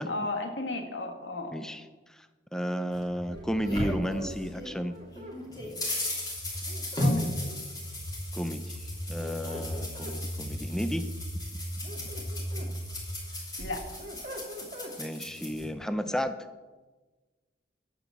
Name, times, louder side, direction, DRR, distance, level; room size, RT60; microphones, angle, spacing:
voice 1, 0.1-1.6 7.0-7.3 13.6-14.0, left 2 dB, 80° left, 5 dB, 1.6 m, -34 dB
voice 2, 2.5-4.9 8.3-8.8 9.1-11.1 15.0-16.4, equal, 5° left, 9 dB, 0.5 m, -32 dB
sound 1, 2.9-4.8 5.1-15.6, left 1 dB, 20° left, 2.8 m, -36 dB
sound 2, 3.2-13.2, equal, 60° left, 2.5 m, -39 dB
sound 3, 3.3-5.4 6.7-7.8 8.9-10.2 11.6-12.7 13.2-15.0, left 1 dB, 35° right, 1.6 m, -44 dB
10.0 x 7.1 x 7.0 m, 1.3 s
head